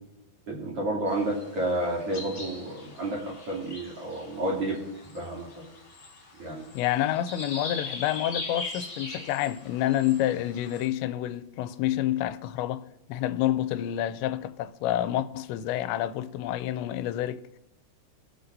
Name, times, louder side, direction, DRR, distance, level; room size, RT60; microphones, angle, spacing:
voice 1, 0.5-4.8 5.1-5.8 6.3-6.6, right 1 dB, 35° right, 3.2 m, -31 dB
sound 1, 1.1-10.9, left 3 dB, 35° left, 1.9 m, -41 dB
voice 2, 6.7-12.8 13.1-17.4, left 13 dB, 90° left, 2.9 m, -28 dB
24.0 x 8.5 x 2.7 m
omnidirectional pair, 5.1 m